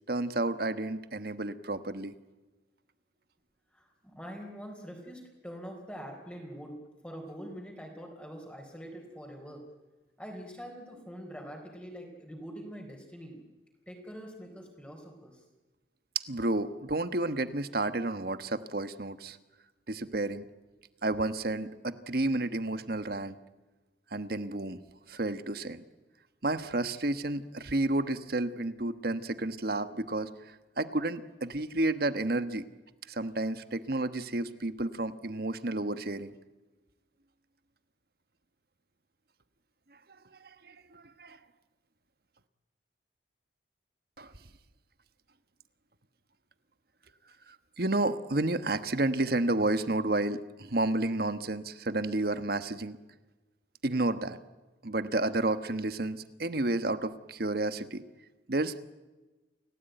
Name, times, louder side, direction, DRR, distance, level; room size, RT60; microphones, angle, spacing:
voice 1, 0.1-2.1 16.3-19.4 19.9-20.4 21.0-23.4 24.1-24.8 25.1-25.8 26.4-30.3 30.8-32.7 33.1-36.3 40.6-41.4 44.2-44.3 47.5-53.0 53.8-54.4 54.8-58.0 58.5-58.8, right 2 dB, 55° right, 11 dB, 1.3 m, -31 dB
voice 2, 3.7-6.8 7.0-9.6 10.2-13.4 13.9-15.4, equal, 5° left, 1 dB, 3.9 m, -44 dB
29.0 x 17.5 x 9.2 m, 1.2 s
head